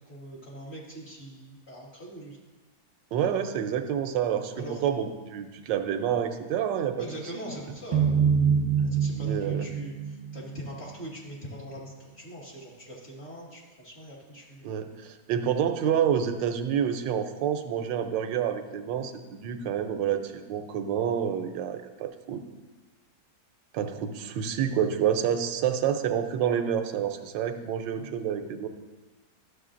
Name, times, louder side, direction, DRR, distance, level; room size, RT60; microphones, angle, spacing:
voice 1, 0.0-2.4 4.6-4.8 7.0-8.1 8.9-14.7 27.9-28.1, right 1 dB, 35° left, -4 dB, 1.8 m, -42 dB
voice 2, 3.1-7.1 7.3-7.5 9.2-9.7 14.6-22.4 23.7-28.7, right 8 dB, 85° right, 8 dB, 1.3 m, -28 dB
sound 1, 7.9-11.1, right 7 dB, 30° right, 0.8 m, -25 dB
12.5 x 6.5 x 2.5 m, 1.2 s
omnidirectional pair, 1.9 m